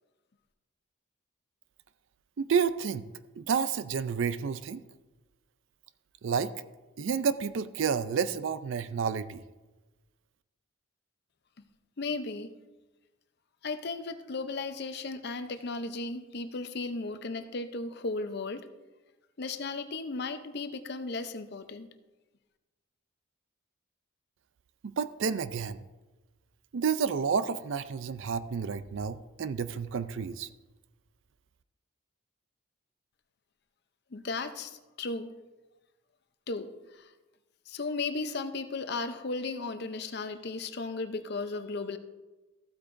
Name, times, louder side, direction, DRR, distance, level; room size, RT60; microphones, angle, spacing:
voice 1, 2.4-3.1 3.4-4.8 6.2-6.5 7.0-9.4 24.8-25.8 26.7-30.5, right 6 dB, 65° right, 14 dB, 0.4 m, -30 dB
voice 2, 12.0-12.5 13.6-18.7 19.4-21.9 34.1-35.3 36.5-37.1 37.7-42.0, left 3 dB, 50° left, 9 dB, 0.6 m, -35 dB
14.5 x 8.3 x 2.6 m, 1.2 s
head